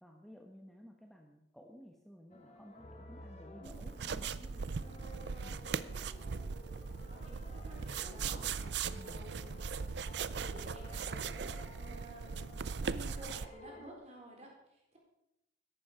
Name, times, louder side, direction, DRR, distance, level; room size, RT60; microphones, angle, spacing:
voice 1, 0.0-4.7 5.4-5.6 8.9-9.2, equal, ahead, 1 dB, 1.0 m, -55 dB
sound 1, 2.3-13.9, left 1 dB, 35° left, 1.3 m, -53 dB
sound 2, 3.6-13.5, right 5 dB, 65° right, 0.5 m, -39 dB
voice 2, 7.0-9.6 10.3-15.0, right 1 dB, 35° right, -1 dB, 3.9 m, -54 dB
13.5 x 11.0 x 5.0 m, 0.84 s
head